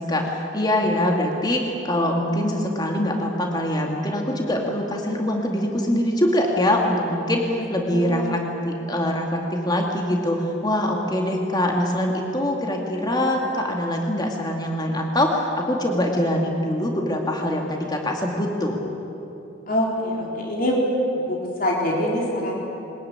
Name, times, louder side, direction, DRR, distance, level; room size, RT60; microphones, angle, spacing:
voice 1, 0.0-18.8, left 1 dB, 20° left, 1 dB, 2.2 m, -23 dB
voice 2, 7.9-8.3 19.7-20.8 21.1-22.5, left 1 dB, 45° left, -2 dB, 4.1 m, -24 dB
22.0 x 20.5 x 9.6 m, 3.0 s
head